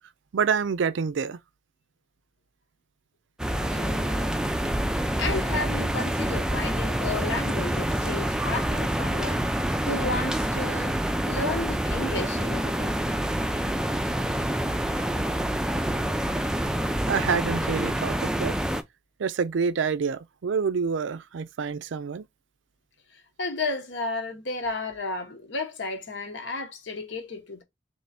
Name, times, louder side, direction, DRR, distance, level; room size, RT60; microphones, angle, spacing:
voice 1, 0.3-1.4 17.1-18.5 19.2-22.2, right 6 dB, 75° right, 0.4 m, -27 dB
sound 1, 3.4-18.8, right 1 dB, 5° right, 0.3 m, -27 dB
voice 2, 3.7-4.4 5.2-9.4 9.9-11.0 11.3-12.9 23.4-27.6, left 3 dB, 70° left, 1.1 m, -32 dB
3.4 x 3.1 x 4.0 m
head